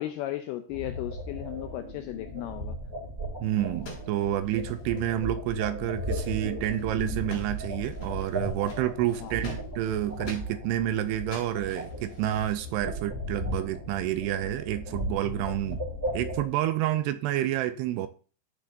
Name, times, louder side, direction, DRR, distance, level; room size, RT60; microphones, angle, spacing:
voice 1, 0.0-2.8 9.2-9.6, left 14 dB, 90° left, 2.3 m, -36 dB
sound 1, 0.7-16.4, equal, 15° right, 2.8 m, -36 dB
voice 2, 3.4-15.8 16.1-18.1, right 12 dB, 80° right, 2.5 m, -29 dB
sound 2, 3.7-5.2 5.5-5.6 5.8-6.4 6.7-7.0 7.3-10.5 11.0-12.7, left 2 dB, 50° left, 5.7 m, -47 dB
15.5 x 6.8 x 2.7 m
omnidirectional pair, 5.1 m